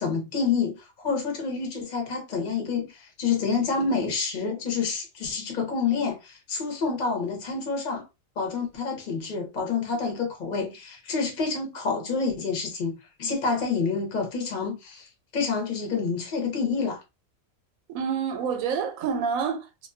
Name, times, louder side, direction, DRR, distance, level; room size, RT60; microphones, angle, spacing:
voice 1, 0.0-8.0 8.4-17.0, left 5 dB, 45° left, 0.6 m, -28 dB
voice 2, 17.9-19.9, right 6 dB, 80° right, 1.0 m, -28 dB
2.3 x 2.2 x 2.4 m
omnidirectional pair, 1.4 m